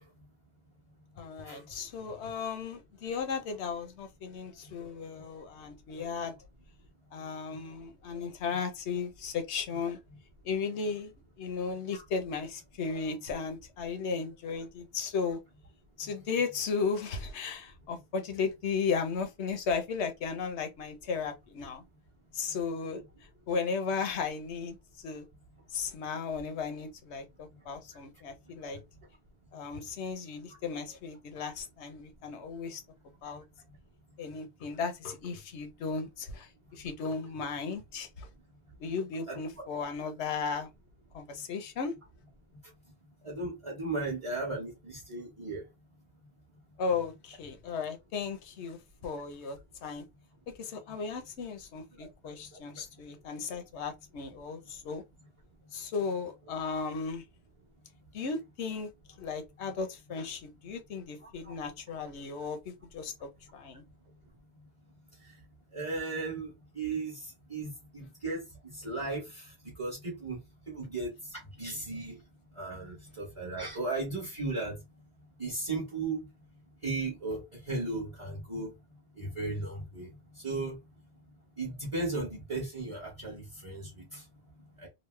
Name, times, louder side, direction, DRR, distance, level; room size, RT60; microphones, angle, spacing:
voice 1, 1.2-6.3 7.1-10.0 10.4-11.1 11.4-15.4 16.0-21.8 22.3-23.0 23.5-25.2 25.7-28.8 29.5-32.8 33.2-33.4 34.2-38.3 38.8-40.7 41.1-41.9 46.8-50.0 50.6-55.0 55.7-57.2 58.1-58.9 59.2-63.8, left 5 dB, 85° left, 1.0 m, -35 dB
voice 2, 43.2-45.6 65.7-67.1 67.5-68.4 68.8-69.2 69.8-70.4 70.7-71.1 71.6-72.2 72.6-74.7 75.4-76.2 76.8-78.7 79.2-80.1 80.4-80.7 81.6-84.2 84.8-84.9, right 3 dB, 30° right, 1.1 m, -35 dB
3.1 x 2.0 x 3.1 m
omnidirectional pair, 1.1 m